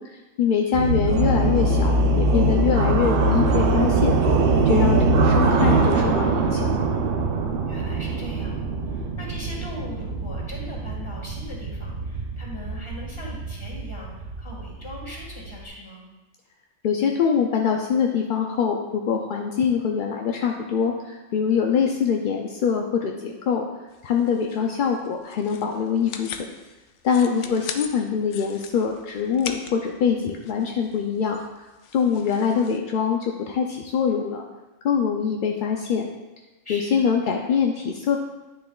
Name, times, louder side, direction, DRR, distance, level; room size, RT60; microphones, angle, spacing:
voice 1, 0.0-4.1 4.7-6.7 16.8-23.7 24.0-26.3 27.0-31.4 31.9-34.4 34.8-36.1 36.7-38.2, left 6 dB, 60° left, 1 dB, 0.5 m, -24 dB
sound 1, 0.7-15.6, right 2 dB, 55° right, 0.8 m, -22 dB
voice 2, 7.7-16.1 21.5-21.7 27.1-27.6 32.1-32.3 36.6-37.1, left 1 dB, 25° left, -3 dB, 1.8 m, -40 dB
sound 2, 23.9-32.8, left 7 dB, 75° left, 0.9 m, -40 dB
9.9 x 6.6 x 2.3 m, 1.1 s
omnidirectional pair, 1.3 m